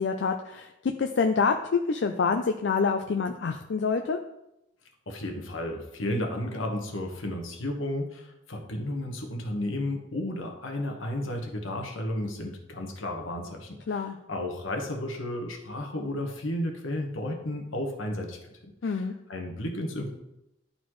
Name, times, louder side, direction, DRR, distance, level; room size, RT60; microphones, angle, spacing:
voice 1, 0.0-4.2 13.9-14.2 18.8-19.1, left 5 dB, 60° left, 5 dB, 0.4 m, -27 dB
voice 2, 5.1-20.1, left 1 dB, 75° left, 2 dB, 1.2 m, -33 dB
11.0 x 4.1 x 3.1 m, 0.89 s
head